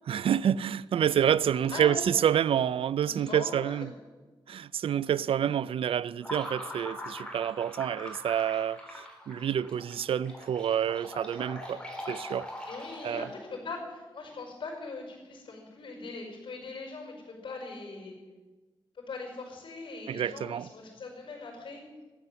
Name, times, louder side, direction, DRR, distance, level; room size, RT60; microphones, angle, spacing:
voice 1, 0.1-3.9 4.5-11.8 12.1-12.5 13.0-13.3 20.1-20.7, right 9 dB, 85° right, 0.4 m, -28 dB
voice 2, 1.7-2.2 3.0-3.9 12.7-18.2 19.1-21.8, left 3 dB, 70° left, 5.3 m, -41 dB
sound 1, 6.2-13.4, left 1 dB, 10° left, 3.5 m, -42 dB
13.0 x 9.4 x 8.0 m
wide cardioid pair, 130°, 9 cm